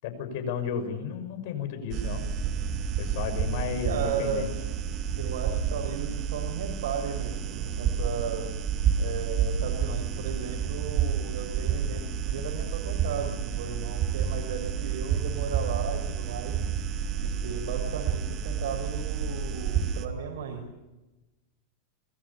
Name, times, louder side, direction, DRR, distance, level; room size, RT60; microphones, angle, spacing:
voice 1, 0.0-2.2 3.0-4.5, left 7 dB, 55° left, 8 dB, 6.1 m, -33 dB
sound 1, 1.9-20.1, right 7 dB, 35° right, 2.2 m, -30 dB
voice 2, 3.8-4.5 5.2-8.6 8.9-16.6 17.2-20.7, right 6 dB, 80° right, 1 dB, 5.3 m, -35 dB
25.5 x 21.0 x 7.0 m, 1.1 s
supercardioid pair, 160°, 0 cm